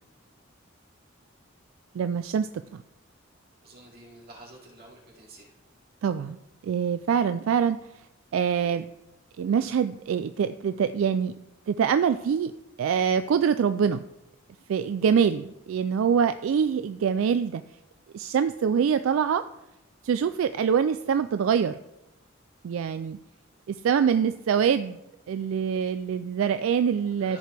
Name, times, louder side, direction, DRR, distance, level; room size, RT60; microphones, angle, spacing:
voice 1, 1.9-2.8 6.0-6.4 6.6-7.8 8.3-8.9 9.4-11.3 11.7-12.5 12.8-14.0 14.7-17.6 18.1-19.5 20.0-21.8 22.6-23.2 23.7-25.0 25.3-27.4, right 7 dB, 80° right, 11 dB, 0.3 m, -24 dB
voice 2, 3.6-5.5 27.0-27.4, right 1 dB, 50° right, -3 dB, 2.5 m, -49 dB
14.5 x 4.9 x 3.4 m, 0.93 s
head